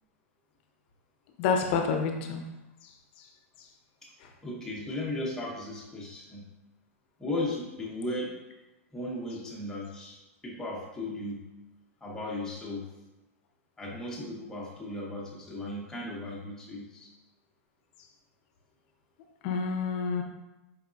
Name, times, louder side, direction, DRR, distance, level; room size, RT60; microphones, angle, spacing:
voice 1, 1.4-2.4 3.2-3.3 19.4-20.2, left 5 dB, 45° left, 4 dB, 0.6 m, -28 dB
voice 2, 4.4-6.5 7.2-8.3 8.9-10.2 10.4-11.4 12.0-12.9 13.8-17.1, left 1 dB, 5° left, -4 dB, 0.8 m, -36 dB
4.7 x 3.4 x 2.5 m, 1.0 s
supercardioid pair, 150°, 8 cm